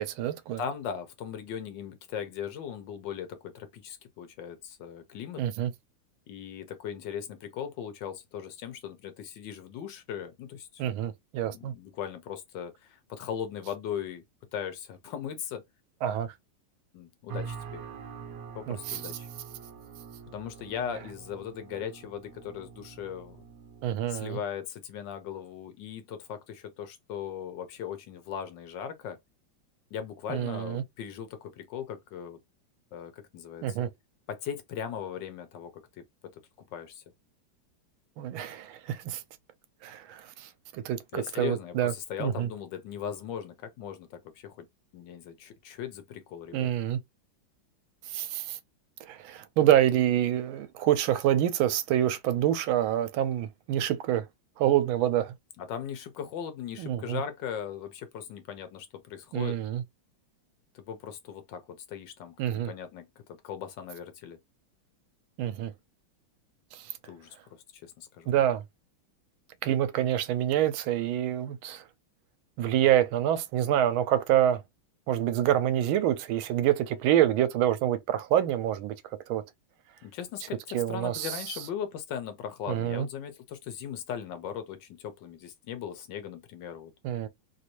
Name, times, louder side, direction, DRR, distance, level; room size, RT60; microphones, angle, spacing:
voice 1, 0.0-0.6 5.4-5.7 10.8-11.7 16.0-16.3 18.7-19.0 23.8-24.4 30.3-30.8 33.6-33.9 38.2-39.2 39.8-41.9 42.2-42.5 46.5-47.0 48.1-48.6 49.0-54.2 54.6-55.3 56.8-57.2 59.3-59.8 62.4-62.7 65.4-65.7 66.7-66.9 68.3-68.6 69.6-71.8 72.6-74.6 75.1-79.0 79.3-79.4 80.7-81.4 82.7-83.1 87.0-87.3, right 11 dB, 80° right, 1.4 m, -27 dB
voice 2, 0.6-5.4 6.3-10.9 11.5-14.2 14.5-15.6 16.9-17.8 18.5-19.3 20.3-23.4 24.1-29.2 29.9-32.4 32.9-33.8 34.3-35.7 36.3-36.4 36.7-37.0 41.1-44.7 44.9-46.7 55.6-59.6 60.7-62.3 62.6-64.4 67.0-68.4 80.0-86.9, left 8 dB, 75° left, 1.2 m, -38 dB
sound 1, 17.3-24.2, right 6 dB, 60° right, 1.0 m, -44 dB
3.3 x 2.5 x 2.8 m
omnidirectional pair, 2.2 m